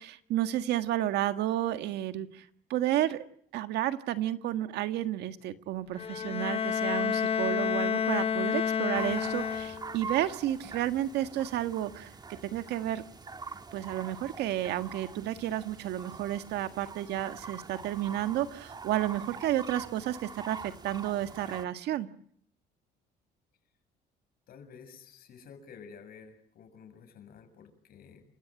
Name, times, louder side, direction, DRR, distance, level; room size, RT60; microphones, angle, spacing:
voice 1, 0.0-3.2 3.5-12.1 12.4-13.0 13.7-22.1, right 13 dB, 80° right, 10 dB, 1.7 m, -31 dB
Bowed string instrument, 6.0-10.1, left 7 dB, 35° left, 0.9 m, -30 dB
sound 1, 8.9-21.7, right 4 dB, 25° right, 1.9 m, -44 dB
voice 2, 24.5-28.2, left 6 dB, 60° left, 7 dB, 7.3 m, -51 dB
29.0 x 16.5 x 9.0 m, 0.66 s
cardioid pair, 110°, 17 cm